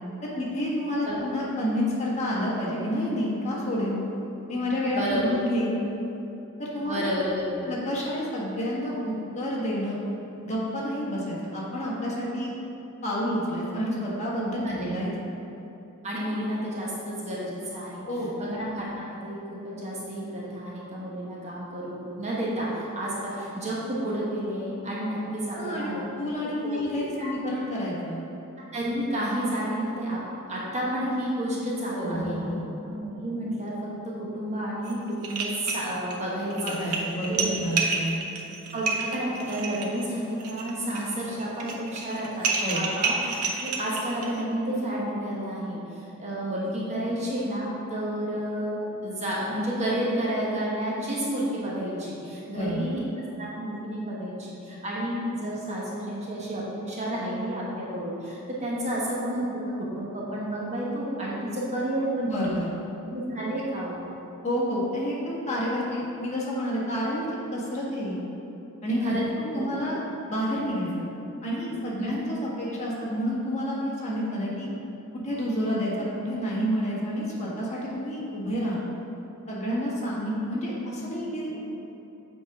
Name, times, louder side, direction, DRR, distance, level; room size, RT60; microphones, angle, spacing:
voice 1, 0.3-4.0 4.5-5.8 6.6-7.1 7.6-10.0 10.4-12.5 13.0-15.1 18.1-18.3 25.5-25.9 26.2-28.2 31.9-32.6 36.6-38.2 42.6-42.9 52.5-52.9 62.2-62.7 64.4-67.3 67.5-68.2 68.8-70.0 70.3-71.0 71.4-74.7 75.2-78.8 79.5-81.6, equal, 30° left, -6 dB, 1.4 m, -29 dB
voice 2, 4.9-5.4 6.8-7.7 14.6-14.9 16.0-18.0 18.4-19.4 19.6-26.0 26.7-27.3 28.7-30.2 30.5-32.4 32.8-33.7 34.0-37.0 37.3-37.6 38.7-42.5 42.7-53.0 53.3-59.5 59.9-62.4 63.1-64.0 69.0-69.2 69.5-69.7 72.0-72.1, right 1 dB, 30° right, -6 dB, 1.0 m, -31 dB
sound 1, 34.8-34.9 35.2-36.2 36.5-44.4, right 4 dB, 80° right, 0.8 m, -30 dB
7.7 x 3.7 x 4.7 m, 2.9 s
head